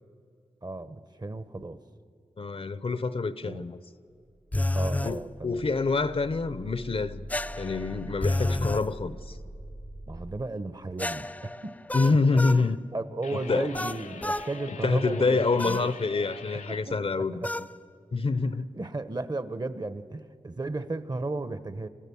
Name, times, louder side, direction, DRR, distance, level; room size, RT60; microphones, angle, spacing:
voice 1, 0.6-1.8 3.4-3.6 4.7-5.7 10.1-11.7 12.0-12.2 12.5-15.9 16.7-17.5 18.7-21.9, right 2 dB, 35° right, 1.0 m, -35 dB
voice 2, 2.4-3.8 5.0-7.3 7.6-9.4 11.9-12.8 13.5-13.7 14.8-17.4 18.1-18.7, left 3 dB, 50° left, 0.8 m, -26 dB
sound 1, 4.1-10.3, right 1 dB, 85° right, 3.7 m, -44 dB
sound 2, 4.5-5.2 7.3-8.9 11.0-12.6 13.7-14.5 15.6-15.9 17.4-17.7, left 1 dB, 10° left, 0.5 m, -30 dB
sound 3, 13.2-16.8, left 5 dB, 80° left, 0.8 m, -44 dB
28.5 x 15.0 x 7.1 m
cardioid pair, 60°, 13 cm